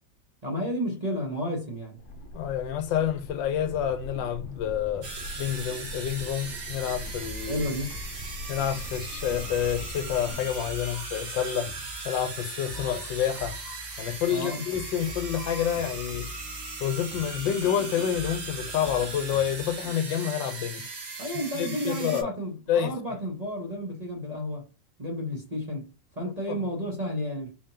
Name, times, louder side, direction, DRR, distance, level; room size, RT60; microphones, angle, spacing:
voice 1, 0.4-2.0 7.5-8.0 14.3-14.6 21.2-24.7 25.0-27.5, equal, 25° right, 1.0 m, -32 dB
sound 1, 2.0-10.3, left 1 dB, 45° left, 0.6 m, -42 dB
voice 2, 2.3-5.1 5.4-7.6 8.5-11.7 12.0-13.6 14.0-16.3 16.8-20.9 21.5-22.3 22.7-22.9 26.5-26.6, left 9 dB, 80° left, 1.3 m, -28 dB
sound 2, 5.0-22.2, right 3 dB, 75° right, 2.4 m, -38 dB
sound 3, 6.8-19.9, left 1 dB, 20° left, 1.7 m, -44 dB
4.9 x 3.7 x 2.8 m
omnidirectional pair, 2.0 m